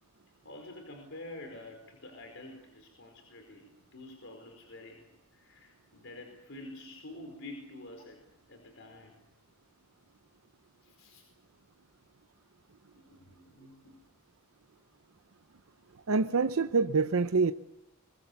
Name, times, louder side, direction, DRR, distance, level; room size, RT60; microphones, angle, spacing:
voice 1, 0.4-8.2 8.5-9.2 10.8-11.2 12.9-14.0, left 2 dB, 65° left, 4.8 m, -48 dB
voice 2, 16.1-17.5, right 4 dB, 80° right, 0.7 m, -26 dB
24.5 x 23.0 x 7.0 m
head